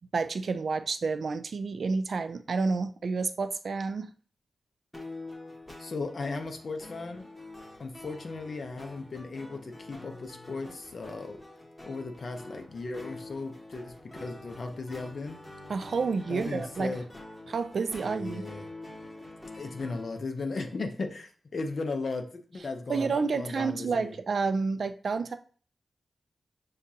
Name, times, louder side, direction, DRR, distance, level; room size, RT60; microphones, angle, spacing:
voice 1, 0.1-4.1 15.7-16.9 17.5-18.4 22.9-25.4, right 4 dB, 65° right, 9 dB, 0.4 m, -29 dB
sound 1, 4.9-20.2, left 2 dB, 15° left, 1.3 m, -46 dB
voice 2, 5.8-7.3 7.8-11.4 11.8-13.9 14.2-15.4 16.3-17.0 18.1-18.7 19.6-24.1, left 3 dB, 55° left, 5 dB, 0.8 m, -36 dB
6.5 x 2.4 x 2.8 m, 0.42 s
wide cardioid pair, 90°, 0 cm